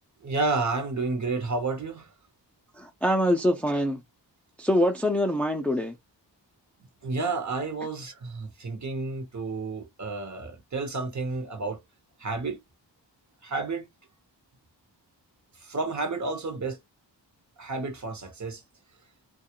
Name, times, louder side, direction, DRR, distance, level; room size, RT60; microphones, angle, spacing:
voice 1, 0.2-2.1 7.0-11.8 12.2-12.6 13.4-13.9 15.6-16.8 17.6-18.6, right 3 dB, 45° right, 0.9 m, -31 dB
voice 2, 2.8-4.0 4.6-5.9, equal, 5° left, 0.5 m, -24 dB
2.3 x 2.0 x 2.9 m
cardioid pair, 60°, 43 cm